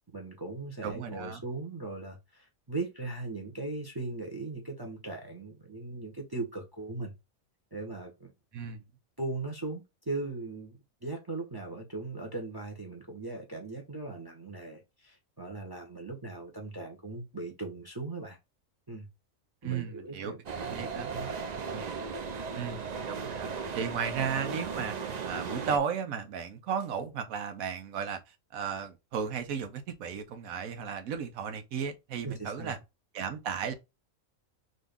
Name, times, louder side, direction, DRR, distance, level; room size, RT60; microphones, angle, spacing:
voice 1, 0.1-7.1 7.7-8.3 9.2-18.4 18.9-19.1 19.6-20.4 20.7-21.3 21.7-21.9 32.2-32.8, right 3 dB, 25° right, 0.6 m, -39 dB
voice 2, 0.8-1.4 8.5-8.8 19.6-21.1 22.5-23.5 23.7-24.9 25.2-32.8 33.1-33.7, right 7 dB, 90° right, 1.2 m, -35 dB
sound 1, 20.5-25.8, right 5 dB, 65° right, 0.4 m, -36 dB
3.8 x 2.7 x 3.5 m
omnidirectional pair, 1.4 m